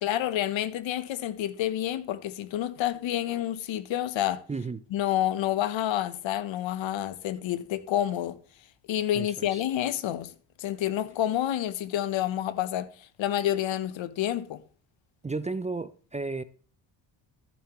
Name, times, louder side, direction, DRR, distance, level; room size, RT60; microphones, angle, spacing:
voice 1, 0.0-4.4 4.9-8.4 8.9-10.3 10.6-14.6, left 12 dB, 70° left, 0.9 m, -29 dB
voice 2, 4.5-4.8 9.1-9.6 15.2-16.4, right 3 dB, 15° right, 0.4 m, -33 dB
14.0 x 7.0 x 3.0 m
supercardioid pair, 65°, 47 cm